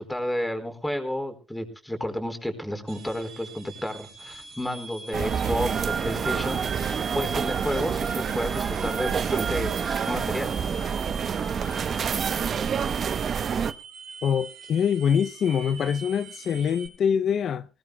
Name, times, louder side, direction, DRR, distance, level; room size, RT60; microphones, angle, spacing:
voice 1, 0.0-10.5, left 1 dB, 5° left, 4.5 m, -31 dB
sound 1, 2.9-16.9, right 4 dB, 75° right, 4.9 m, -42 dB
sound 2, 5.1-13.7, right 7 dB, 55° right, 0.9 m, -27 dB
voice 2, 14.2-17.7, left 7 dB, 65° left, 0.6 m, -24 dB
21.0 x 18.5 x 2.3 m
cardioid pair, 90°, 0 cm